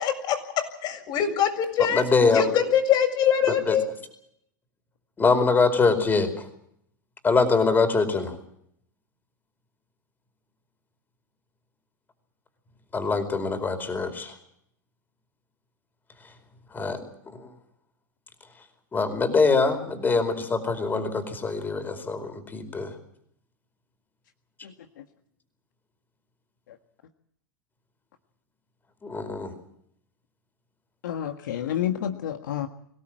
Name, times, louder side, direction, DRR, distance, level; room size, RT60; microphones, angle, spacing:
voice 1, 0.0-2.0 2.3-3.9, left 9 dB, 45° left, 5 dB, 7.3 m, -24 dB
voice 2, 1.9-2.4 3.5-3.8 5.2-6.4 7.2-8.3 12.9-14.3 16.7-17.0 17.4-17.5 18.9-22.9 29.0-29.5, left 4 dB, 20° left, 8 dB, 4.7 m, -23 dB
voice 3, 31.0-32.7, left 10 dB, 75° left, 6 dB, 1.6 m, -29 dB
24.5 x 17.5 x 7.7 m, 0.70 s
hypercardioid pair, 100°, 10 cm